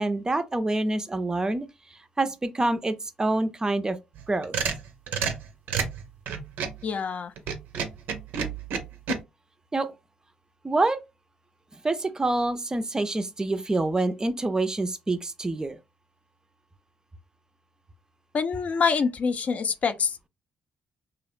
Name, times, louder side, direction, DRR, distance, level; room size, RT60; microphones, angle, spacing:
voice 1, 0.0-1.6 1.9-4.0 4.3-4.6 9.7-9.9 10.6-11.0 11.8-15.8, right 2 dB, 20° right, 0.4 m, -26 dB
sound 1, 4.2-6.8 7.4-9.2, right 6 dB, 75° right, 0.5 m, -30 dB
voice 2, 6.8-7.3 18.3-20.3, left 5 dB, 50° left, 0.3 m, -26 dB
2.7 x 2.1 x 2.4 m
supercardioid pair, 60°, 3 cm